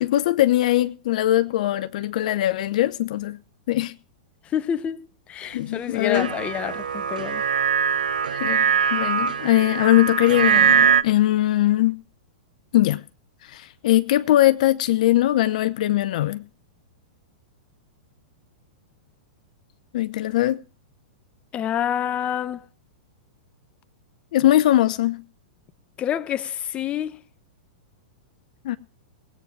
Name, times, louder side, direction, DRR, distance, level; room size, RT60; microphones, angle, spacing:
voice 1, 0.0-3.4 3.7-3.9 5.5-6.3 8.3-12.0 12.7-13.0 13.4-16.5 19.9-20.6 24.3-25.2 28.6-28.8, left 14 dB, 60° left, 0.6 m, -21 dB
voice 2, 4.5-7.4 21.5-22.7 26.0-27.2, left 9 dB, 30° left, 0.9 m, -28 dB
sound 1, 6.1-11.0, right 8 dB, 80° right, 0.7 m, -22 dB
18.0 x 8.8 x 6.0 m
hypercardioid pair, 110°, 4 cm